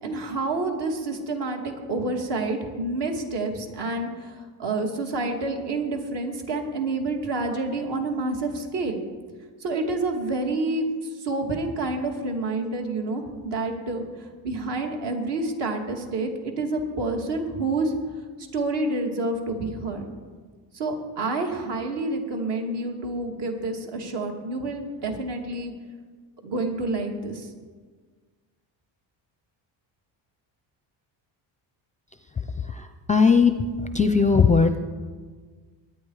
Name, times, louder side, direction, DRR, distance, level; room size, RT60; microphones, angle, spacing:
voice 1, 0.0-9.0 9.6-10.9 11.1-18.0 18.5-20.1 20.7-25.7 26.4-27.5, right 2 dB, 60° right, 2 dB, 2.6 m, -28 dB
voice 2, 32.3-33.5 33.8-34.8, left 5 dB, 15° left, 9 dB, 0.5 m, -20 dB
22.0 x 9.4 x 4.9 m, 1.5 s
cardioid pair, 130°, 47 cm